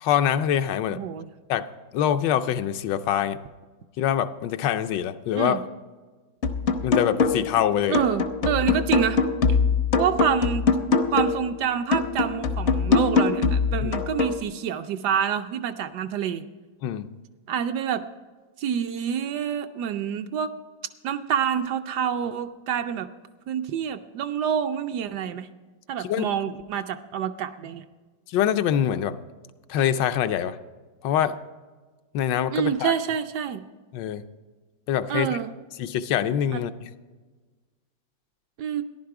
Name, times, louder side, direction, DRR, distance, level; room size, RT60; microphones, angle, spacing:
voice 1, 0.0-1.0 1.5-1.7 1.9-3.4 4.0-5.7 6.8-8.0 13.8-13.9 16.8-17.1 26.0-26.3 28.3-29.2 29.7-30.6 31.0-31.4 32.1-32.9 33.9-34.2 34.9-35.4 35.8-36.9, left 10 dB, 80° left, 10 dB, 1.3 m, -24 dB
voice 2, 0.9-1.3 5.3-5.6 7.9-9.2 10.0-10.7 11.1-16.4 17.5-18.0 18.6-20.5 21.0-23.1 23.5-25.5 25.9-27.8 32.5-33.7 35.1-35.5 36.5-36.6 38.6-38.8, right 8 dB, 70° right, 8 dB, 1.1 m, -27 dB
sound 1, 6.4-7.6 7.9-11.5 11.9-14.4, left 5 dB, 55° left, 0.8 m, -23 dB
14.0 x 11.0 x 4.8 m, 1.3 s
omnidirectional pair, 2.0 m